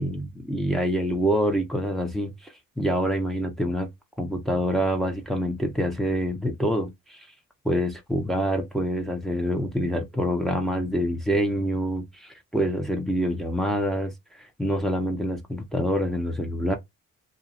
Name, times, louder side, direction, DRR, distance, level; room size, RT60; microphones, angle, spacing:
voice 1, 0.0-3.9 4.2-7.3 7.6-16.8, equal, ahead, 0.9 m, -26 dB
2.7 x 2.4 x 2.5 m
supercardioid pair, 55°, 33 cm